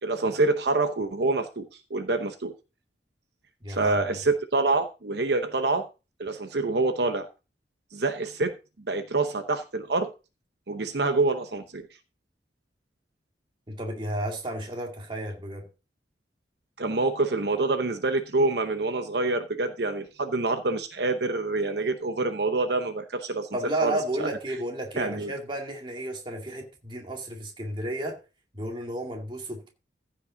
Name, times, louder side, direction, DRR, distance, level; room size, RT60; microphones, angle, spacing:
voice 1, 0.0-2.5 3.7-5.9 6.2-7.3 7.9-8.5 8.9-10.1 10.7-11.8 16.8-23.5 23.8-24.3 25.0-25.3, right 3 dB, 65° right, 0.9 m, -26 dB
voice 2, 3.6-4.0 13.7-15.7 23.5-28.2 28.5-29.7, right 1 dB, 25° right, 2.3 m, -32 dB
15.0 x 5.7 x 3.9 m
head